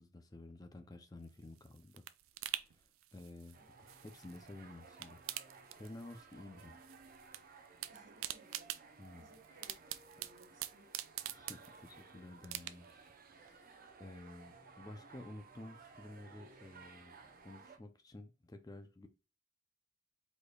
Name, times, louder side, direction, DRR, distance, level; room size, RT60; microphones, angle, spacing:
voice 1, 0.0-2.0 2.4-5.2 5.8-6.8 9.0-9.3 11.3-13.0 13.4-19.1, left 2 dB, 20° left, 0.4 m, -52 dB
sound 1, 1.2-4.5 4.8-6.3 6.6-7.4 7.7-12.0 12.4-13.1 13.5-13.6, right 13 dB, 85° right, 0.4 m, -45 dB
sound 2, 3.5-17.8, right 4 dB, 45° right, 0.7 m, -58 dB
voice 2, 7.9-8.7 9.2-9.7 10.2-10.9, right 1 dB, 65° right, 1.5 m, -63 dB
5.0 x 4.1 x 2.3 m
head